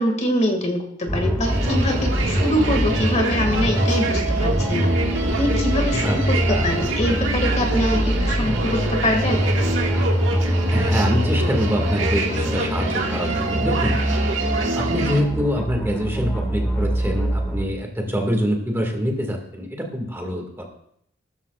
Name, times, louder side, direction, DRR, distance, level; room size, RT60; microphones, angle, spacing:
voice 1, 0.0-9.4, left 1 dB, 35° left, 3 dB, 2.0 m, -24 dB
sound 1, 1.1-17.6, equal, 10° left, 1.9 m, -23 dB
sound 2, 1.4-15.2, right 3 dB, 80° right, 1.9 m, -26 dB
voice 2, 10.7-14.0 14.7-20.7, equal, 15° right, 1 dB, 1.9 m, -25 dB
18.0 x 13.5 x 2.4 m, 0.72 s
head